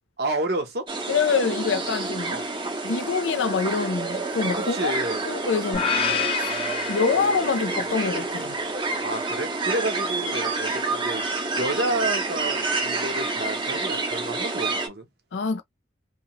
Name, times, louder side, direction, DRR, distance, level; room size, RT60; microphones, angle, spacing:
voice 1, 0.2-0.9 2.3-2.4 4.5-5.3 9.0-15.1, right 2 dB, 60° right, 0.8 m, -30 dB
sound 1, 0.9-14.9, right 3 dB, 25° right, 0.5 m, -28 dB
voice 2, 1.1-2.4 2.8-4.9 5.2-5.9 6.9-8.6 15.3-15.6, left 5 dB, 90° left, 0.5 m, -25 dB
sound 2, 5.7-7.9, left 6 dB, 30° left, 0.5 m, -28 dB
2.8 x 2.1 x 2.9 m
head